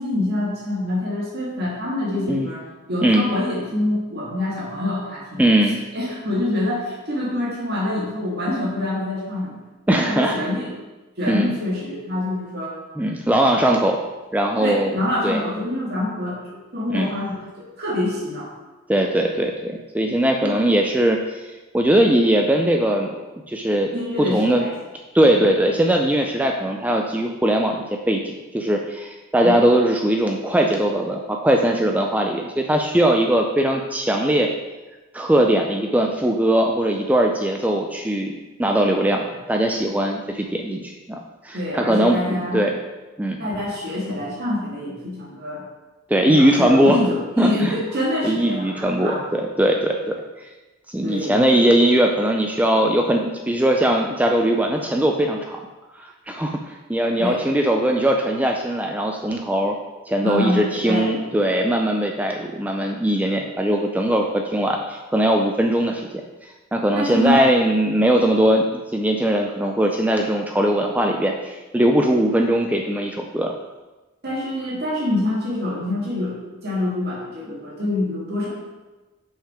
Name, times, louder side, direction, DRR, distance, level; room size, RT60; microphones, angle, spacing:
voice 1, 0.0-5.5 5.9-9.6 9.9-10.7 11.2-12.8 14.6-18.5 20.4-20.6 23.9-24.7 25.3-25.4 29.4-29.6 41.5-42.6 43.4-45.6 46.3-49.2 51.0-51.4 57.2-57.4 60.2-61.2 66.9-67.5 74.2-76.4 76.6-78.5, left 1 dB, 50° right, -5 dB, 1.9 m, -26 dB
voice 2, 5.4-5.8 9.9-10.4 11.3-11.5 13.0-14.0 14.3-15.0 15.2-15.4 16.9-17.1 18.9-21.5 21.7-23.1 23.5-23.9 24.2-24.7 25.1-34.5 35.1-38.3 38.6-41.2 41.4-42.8 43.2-43.4 46.1-47.0 47.4-47.7 48.2-50.5 50.9-55.6 56.0-59.7 60.1-66.0 66.7-73.5, right 1 dB, 5° right, 2 dB, 0.4 m, -20 dB
5.9 x 5.6 x 4.8 m, 1.2 s
head